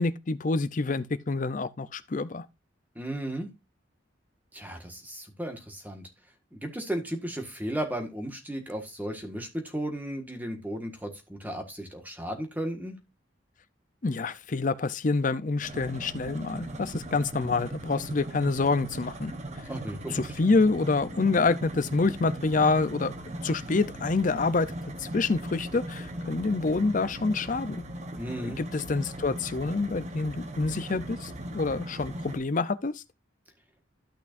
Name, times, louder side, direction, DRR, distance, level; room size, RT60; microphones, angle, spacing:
voice 1, 0.0-2.5 14.0-19.3 20.1-23.1 23.4-24.7 25.0-27.8 28.6-33.0, left 3 dB, 40° left, 0.5 m, -27 dB
voice 2, 2.9-3.5 4.5-6.1 6.5-13.0 19.6-20.3 28.1-28.6, right 1 dB, 10° right, 1.6 m, -35 dB
sound 1, 15.6-32.4, right 1 dB, 35° right, 1.0 m, -39 dB
13.0 x 6.0 x 2.6 m
head